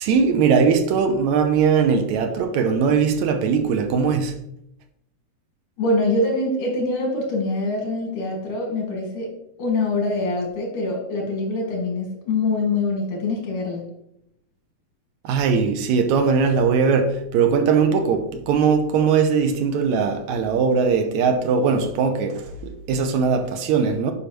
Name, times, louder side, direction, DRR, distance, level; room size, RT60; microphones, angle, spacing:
voice 1, 0.0-4.4 15.2-24.1, right 5 dB, 75° right, 2.0 m, -20 dB
voice 2, 5.8-9.3 9.6-13.8, left 2 dB, 85° left, 3.6 m, -24 dB
10.0 x 5.5 x 3.1 m
omnidirectional pair, 3.5 m